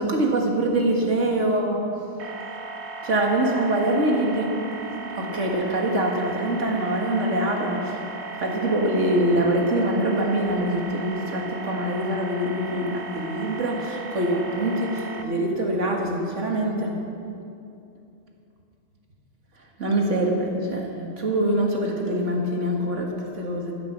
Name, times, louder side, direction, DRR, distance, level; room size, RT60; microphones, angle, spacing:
voice 1, 0.0-1.8 3.0-4.5 5.1-8.0 8.3-17.0 19.8-23.7, right 1 dB, 85° right, 0 dB, 2.0 m, -24 dB
sound 1, 2.2-15.2, right 3 dB, 65° right, 1.3 m, -36 dB
15.0 x 7.3 x 7.3 m, 2.7 s
omnidirectional pair, 1.2 m